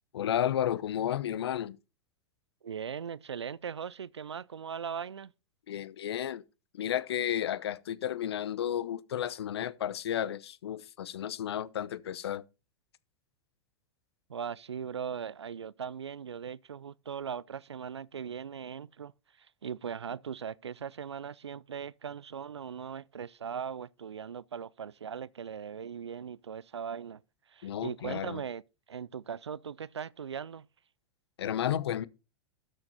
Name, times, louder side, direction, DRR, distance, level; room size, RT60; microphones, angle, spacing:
voice 1, 0.1-1.8 5.7-6.4 6.7-12.4 27.6-28.4 31.4-32.1, left 10 dB, 70° left, 0.7 m, -32 dB
voice 2, 2.6-5.3 14.3-27.2 27.5-28.6 28.9-30.7, right 7 dB, 85° right, 0.4 m, -39 dB
13.0 x 6.3 x 4.1 m
figure-of-eight pair, 95°, 14 cm